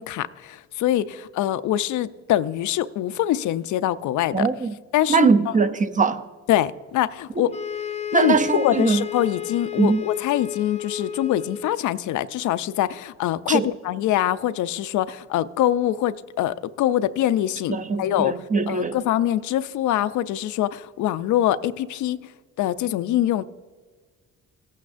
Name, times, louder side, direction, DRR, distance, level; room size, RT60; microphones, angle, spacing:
voice 1, 0.0-4.5 4.9-5.3 6.5-7.6 8.1-22.2 22.6-23.4, left 12 dB, 75° left, 0.5 m, -24 dB
voice 2, 4.3-4.7 5.1-6.2 7.4-7.5 8.1-9.0 9.8-10.0 13.5-13.7 17.7-19.0, right 4 dB, 25° right, 0.5 m, -21 dB
sound 1, 7.5-11.9, left 9 dB, 20° left, 0.5 m, -32 dB
16.5 x 8.5 x 2.5 m
cardioid pair, 90°, 30 cm